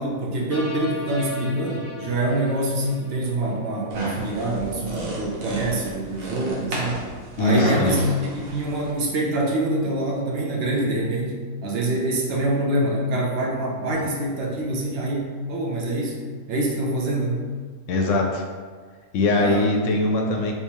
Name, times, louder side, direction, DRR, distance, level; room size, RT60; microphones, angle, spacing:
voice 1, 0.0-7.0 7.4-16.2 16.5-17.4 19.4-19.7, right 1 dB, 60° right, -2 dB, 0.7 m, -25 dB
sound 1, 0.5-3.8, left 2 dB, 15° left, 0.7 m, -37 dB
sound 2, 3.9-8.9, right 1 dB, 80° right, 1.2 m, -31 dB
voice 2, 7.4-8.0 13.9-14.0 17.9-18.4 19.1-20.5, left 2 dB, 70° left, 1 dB, 0.9 m, -21 dB
3.5 x 2.7 x 2.9 m, 1.6 s
omnidirectional pair, 1.4 m